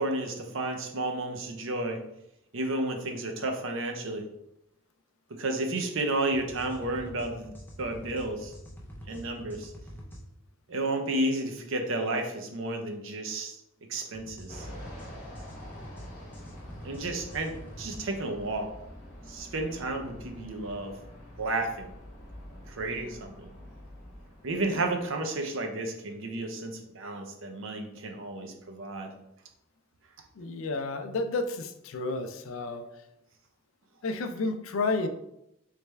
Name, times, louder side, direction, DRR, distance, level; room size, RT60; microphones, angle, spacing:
voice 1, 0.0-2.0 2.5-4.2 5.3-8.5 9.1-9.7 10.7-13.6 13.9-14.7 16.8-18.7 19.3-20.9 21.4-21.9 22.7-23.5 24.4-29.1, right 2 dB, 65° right, 4 dB, 0.6 m, -32 dB
sound 1, 6.3-10.2 14.1-18.0, equal, 10° left, 0.5 m, -45 dB
Fixed-wing aircraft airplane, 14.5-25.3, equal, 35° left, 1.0 m, -47 dB
voice 2, 30.4-32.9 34.0-35.1, left 3 dB, 70° left, 8 dB, 0.4 m, -31 dB
3.3 x 3.2 x 3.2 m, 0.82 s
head